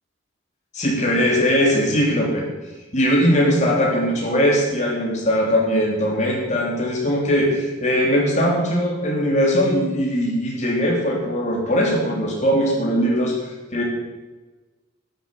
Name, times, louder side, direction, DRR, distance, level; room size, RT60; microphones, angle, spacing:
voice 1, 0.7-2.4 2.9-13.8, equal, 35° left, -1 dB, 3.4 m, -20 dB
11.5 x 9.4 x 7.1 m, 1.2 s
head